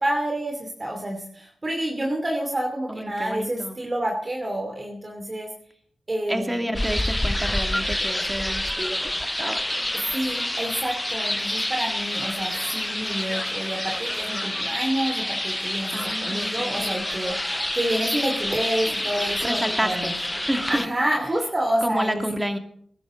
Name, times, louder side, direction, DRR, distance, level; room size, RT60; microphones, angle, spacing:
voice 1, 0.0-5.5 6.1-6.6 10.1-20.1 20.7-22.2, right 1 dB, 30° right, 1 dB, 2.7 m, -28 dB
voice 2, 2.9-3.8 6.3-9.6 15.9-17.1 19.4-20.1 20.5-20.8 21.8-22.6, right 1 dB, 10° right, 5 dB, 2.4 m, -29 dB
sound 1, 6.7-20.9, left 1 dB, 10° left, 0.5 m, -28 dB
21.0 x 11.5 x 3.9 m, 0.63 s
cardioid pair, 45°, 0 cm